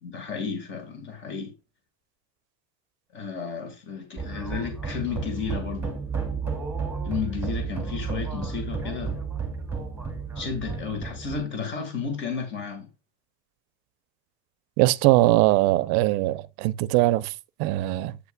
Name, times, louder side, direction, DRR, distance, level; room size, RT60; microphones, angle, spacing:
voice 1, 0.0-1.5 3.1-6.0 7.0-9.2 10.4-12.9, left 6 dB, 30° left, 1.7 m, -32 dB
sound 1, 4.2-11.4, right 5 dB, 5° right, 2.3 m, -32 dB
voice 2, 14.8-18.2, right 17 dB, 65° right, 0.6 m, -21 dB
8.4 x 8.2 x 2.2 m
cardioid pair, 170°, 39 cm